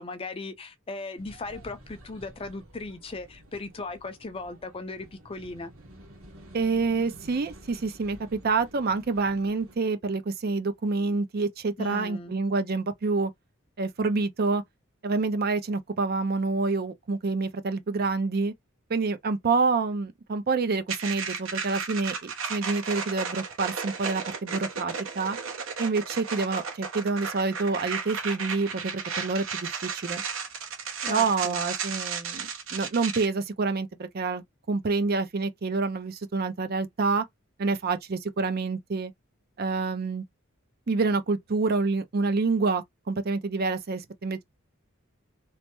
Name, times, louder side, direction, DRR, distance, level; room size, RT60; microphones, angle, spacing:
voice 1, 0.0-5.7 11.8-12.3 31.0-31.6, left 3 dB, 25° left, 0.4 m, -37 dB
sound 1, 1.2-9.8, equal, 90° right, 1.2 m, -50 dB
voice 2, 6.5-13.3 13.8-14.6 15.0-18.5 18.9-25.4 25.8-30.2 31.1-37.2 37.6-39.1 39.6-40.2 40.9-44.4, right 4 dB, 50° right, 0.5 m, -27 dB
sound 2, 20.9-33.3, right 6 dB, 70° right, 0.9 m, -34 dB
3.2 x 2.1 x 2.9 m
head